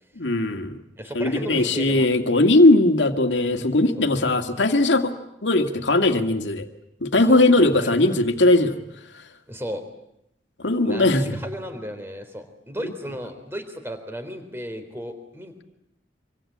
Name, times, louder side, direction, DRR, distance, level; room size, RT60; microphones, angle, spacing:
voice 1, 0.2-0.8 1.1-5.1 5.4-6.7 7.0-8.8 10.6-11.3, left 2 dB, 85° left, 6 dB, 2.2 m, -19 dB
voice 2, 1.0-2.1 4.0-4.1 7.3-7.9 9.5-9.8 10.8-15.6, equal, 15° right, 8 dB, 3.5 m, -35 dB
26.0 x 25.0 x 8.8 m, 0.79 s
head